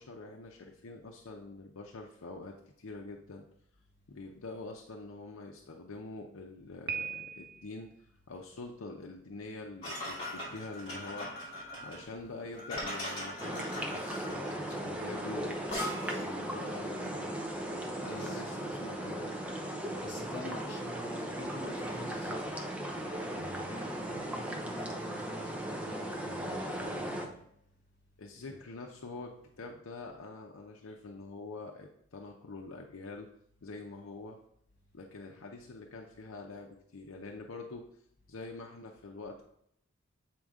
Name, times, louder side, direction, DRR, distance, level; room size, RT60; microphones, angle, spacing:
voice 1, 0.0-3.5 4.1-11.3 11.8-15.8 16.1-17.4 17.9-19.4 28.2-33.3 33.6-34.4 34.9-37.9 38.3-39.4, left 3 dB, 75° left, 1 dB, 0.7 m, -45 dB
Piano, 6.9-7.8, right 7 dB, 50° right, 0.5 m, -38 dB
sound 1, 9.8-16.3, left 1 dB, 25° left, 2.3 m, -40 dB
sound 2, 13.4-27.3, right 1 dB, 5° right, 0.6 m, -37 dB
voice 2, 18.1-18.4 20.0-22.6 23.3-27.4 28.4-28.5, left 1 dB, 40° left, -3 dB, 2.6 m, -46 dB
7.7 x 4.4 x 3.6 m, 0.72 s
head